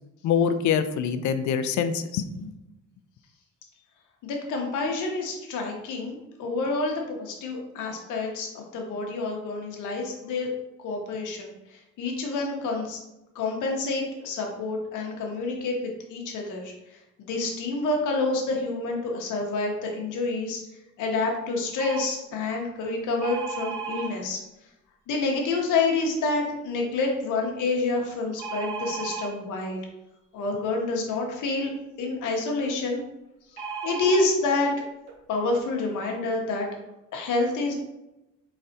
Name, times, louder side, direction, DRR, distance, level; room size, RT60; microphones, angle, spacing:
voice 1, 0.2-2.5, left 7 dB, 70° left, 10 dB, 0.4 m, -25 dB
voice 2, 4.2-10.5 10.8-11.5 12.0-13.0 13.3-15.8 16.1-16.7 17.3-20.6 21.0-24.4 25.1-29.8 30.3-31.7 32.0-33.0 33.8-34.7 35.3-36.7 37.1-37.7, left 3 dB, 85° left, 0 dB, 0.9 m, -28 dB
sound 1, 21.8-22.1 23.2-24.1 28.4-29.3 33.6-34.3 35.1-35.2 35.4-35.6, right 6 dB, 80° right, 0.8 m, -34 dB
4.0 x 3.3 x 2.7 m, 0.94 s
cardioid pair, 90°, 30 cm